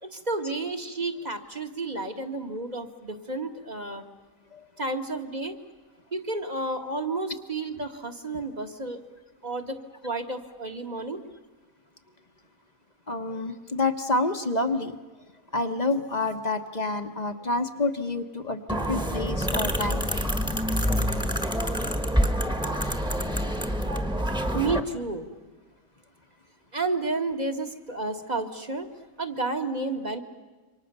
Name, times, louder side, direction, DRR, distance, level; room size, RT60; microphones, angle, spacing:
voice 1, 0.0-4.0 4.8-5.5 6.1-9.0 9.4-11.2 24.5-25.3 26.7-28.9 29.2-30.2, right 3 dB, 30° right, 5 dB, 1.8 m, -31 dB
voice 2, 13.1-15.0 15.5-20.1, left 2 dB, 35° left, 8 dB, 1.3 m, -28 dB
sound 1, 18.7-24.8, equal, 5° right, 1.6 m, -26 dB
28.0 x 25.0 x 6.9 m, 1.3 s
omnidirectional pair, 1.4 m